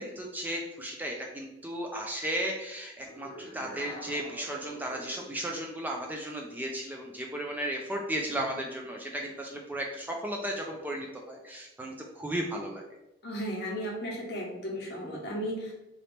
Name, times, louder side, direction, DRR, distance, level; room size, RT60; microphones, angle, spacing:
voice 1, 0.0-12.8, right 1 dB, 10° right, 0 dB, 0.3 m, -35 dB
sound 1, 3.0-5.3, right 1 dB, 15° left, 1.2 m, -45 dB
voice 2, 13.2-15.7, equal, 55° left, -1 dB, 1.0 m, -35 dB
3.9 x 2.8 x 3.4 m, 0.92 s
head